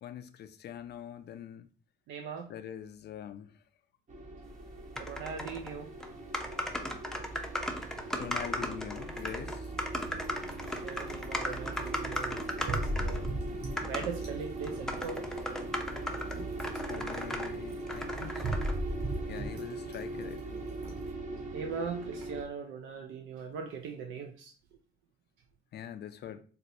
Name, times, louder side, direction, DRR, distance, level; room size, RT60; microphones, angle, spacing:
voice 1, 0.0-1.7 2.5-3.6 8.2-9.7 12.9-14.1 16.9-18.7 19.3-20.6 25.7-26.4, left 9 dB, 55° left, 0.4 m, -44 dB
voice 2, 2.1-2.5 5.0-5.9 10.6-13.3 13.9-15.3 21.5-24.5, right 6 dB, 90° right, 0.4 m, -40 dB
sound 1, 4.1-22.4, right 2 dB, 40° right, 0.6 m, -38 dB
sound 2, 5.0-5.7 6.0-6.1 6.3-13.3 13.8-14.1 14.6-17.5 17.9-18.7, left 1 dB, 5° left, 0.5 m, -36 dB
sound 3, 9.1-21.1, right 1 dB, 55° right, 1.3 m, -54 dB
4.1 x 2.1 x 2.6 m
cardioid pair, 90°, 20 cm